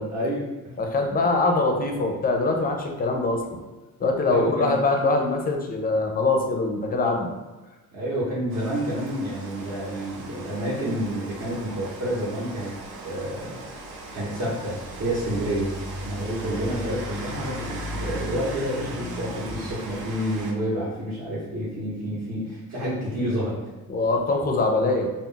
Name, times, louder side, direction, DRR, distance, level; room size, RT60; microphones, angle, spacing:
voice 1, 0.0-0.8 4.3-4.8 7.9-12.8 13.0-13.6 14.1-23.6, equal, 50° right, -7 dB, 0.8 m, -29 dB
voice 2, 0.8-3.6 4.0-7.3 23.9-25.1, left 3 dB, 25° left, 2 dB, 0.4 m, -23 dB
Rain, 8.5-20.5, right 1 dB, 80° right, 0.7 m, -37 dB
2.3 x 2.0 x 3.7 m, 1.2 s
cardioid pair, 115°, 35 cm